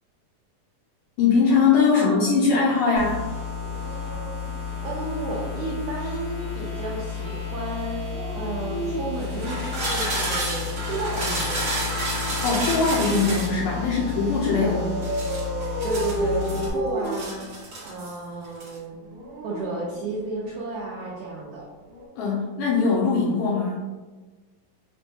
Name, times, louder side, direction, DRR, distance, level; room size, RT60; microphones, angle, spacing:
voice 1, 1.2-3.2 12.4-14.9 22.2-23.9, left 4 dB, 80° left, -6 dB, 2.0 m, -21 dB
voice 2, 1.8-2.3 4.8-8.0 8.3-11.6 14.6-15.0 15.8-18.9 19.4-21.7, right 3 dB, 90° right, -5 dB, 1.7 m, -32 dB
sound 1, 2.9-16.7, left 7 dB, 55° left, 1.1 m, -32 dB
Dog, 3.6-5.5 7.9-10.3 11.6-13.3 14.4-18.0 18.9-20.6 21.8-22.1, right 1 dB, 70° right, 1.2 m, -34 dB
sound 2, 6.4-8.3 9.1-13.6 15.0-16.7 17.0-18.2 18.4-18.8, right 1 dB, 55° right, 1.4 m, -31 dB
6.1 x 2.2 x 2.6 m, 1.3 s
omnidirectional pair, 4.2 m